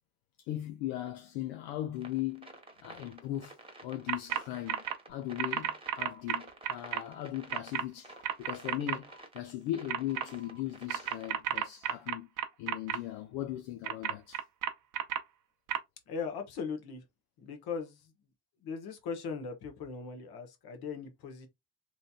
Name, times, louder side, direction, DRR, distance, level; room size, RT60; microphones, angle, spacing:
voice 1, 0.5-3.6 3.8-12.3 12.6-14.4, left 13 dB, 90° left, 0.6 m, -38 dB
sound 1, 1.9-11.7, right 2 dB, 15° right, 1.0 m, -51 dB
sound 2, 4.1-4.4 4.7-4.9 5.4-7.0 7.5-7.8 8.2-9.0 9.9-10.2 10.9-13.0 13.8-15.2 15.7-15.8, right 10 dB, 55° right, 0.6 m, -32 dB
sound 3, 5.1-5.2 6.1-6.2 7.1-7.2 8.1-8.2 9.1-9.2 10.1-10.6, equal, 30° left, 1.8 m, -57 dB
voice 2, 16.1-17.0 17.4-18.1 18.6-21.5, left 5 dB, 65° left, 1.1 m, -39 dB
3.1 x 2.7 x 2.3 m
supercardioid pair, 75°, 40 cm